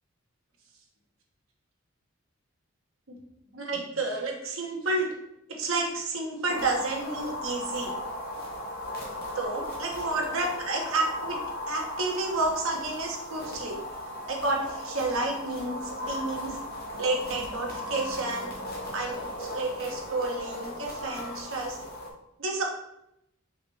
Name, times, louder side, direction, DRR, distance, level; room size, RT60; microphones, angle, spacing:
voice 1, 3.5-5.1 5.6-7.9 9.3-11.4 11.7-13.8 14.3-16.6 17.0-18.5 18.9-21.8 22.4-22.7, right 2 dB, 80° right, 0 dB, 1.1 m, -30 dB
sound 1, 6.5-22.1, left 1 dB, 50° left, 1.1 m, -37 dB
5.0 x 3.1 x 3.3 m, 0.80 s
head